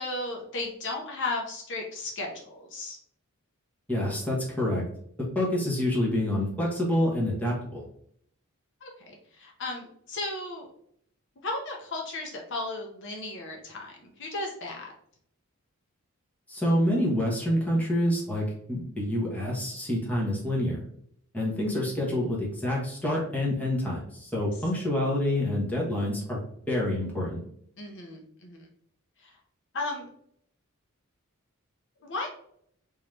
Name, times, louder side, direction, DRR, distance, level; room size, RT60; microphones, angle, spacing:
voice 1, 0.0-3.0 8.8-10.7 11.4-14.9 27.8-28.6 29.2-29.3 29.7-30.1 32.0-32.3, left 2 dB, 55° left, 0 dB, 0.8 m, -35 dB
voice 2, 3.9-4.8 5.3-7.8 16.5-20.8 21.3-26.4 26.7-27.4, left 1 dB, 5° left, -4 dB, 1.1 m, -27 dB
3.7 x 3.0 x 3.2 m, 0.68 s
head